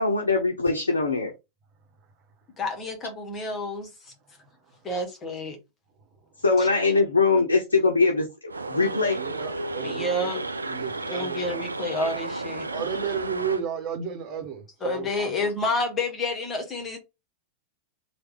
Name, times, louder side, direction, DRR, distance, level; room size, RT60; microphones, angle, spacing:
voice 1, 0.0-1.3 6.4-8.3 8.7-9.2, left 3 dB, 75° left, 0.7 m, -22 dB
voice 2, 2.6-4.1 4.8-5.6 6.6-6.7 9.8-10.4 11.1-12.7 14.8-17.0, left 2 dB, 25° left, 1.2 m, -29 dB
sound 1, 8.5-13.6, right 3 dB, 80° right, 0.4 m, -33 dB
voice 3, 9.2-10.3 10.6-11.7 12.7-15.3, right 7 dB, 35° right, 1.2 m, -33 dB
3.3 x 2.4 x 3.5 m
figure-of-eight pair, 90°, 0 cm